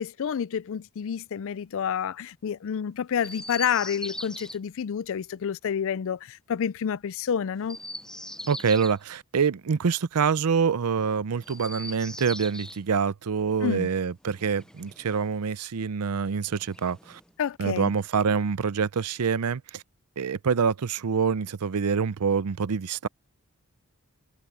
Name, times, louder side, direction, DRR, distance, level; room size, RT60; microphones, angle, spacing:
voice 1, 0.0-7.8 13.6-13.9 17.4-17.9, left 8 dB, 60° left, 0.4 m, -29 dB
Chirp tweet, 3.2-4.6 7.6-9.0 11.4-12.8 14.2-15.3 16.4-17.3, left 1 dB, 5° left, 0.6 m, -41 dB
voice 2, 8.5-17.2 17.6-19.8 20.2-23.1, right 6 dB, 85° right, 0.5 m, -26 dB
head